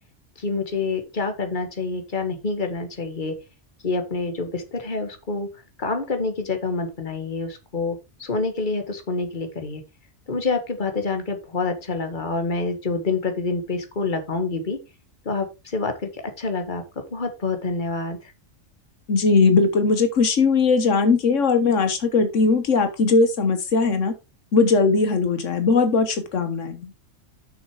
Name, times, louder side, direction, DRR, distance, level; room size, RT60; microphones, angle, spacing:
voice 1, 0.4-3.3 3.8-5.5 5.8-9.8 10.3-14.8 15.3-16.8 17.1-18.3, left 3 dB, 40° left, 6 dB, 1.7 m, -27 dB
voice 2, 19.1-24.1 24.5-26.9, left 4 dB, 85° left, 9 dB, 1.5 m, -19 dB
6.9 x 6.5 x 4.8 m, 0.27 s
omnidirectional pair, 1.2 m